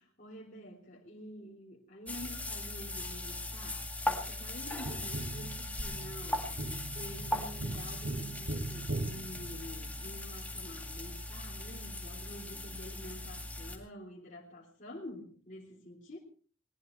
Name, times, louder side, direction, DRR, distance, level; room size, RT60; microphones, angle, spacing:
voice 1, 0.0-3.9 4.3-6.5 6.9-16.2, equal, 40° left, -3 dB, 3.4 m, -48 dB
sound 1, 2.1-13.8, left 1 dB, 10° left, 2.2 m, -39 dB
Tap, 4.9-10.1 12.7-12.8, right 2 dB, 60° right, 1.9 m, -40 dB
20.5 x 19.5 x 3.3 m, 0.41 s
head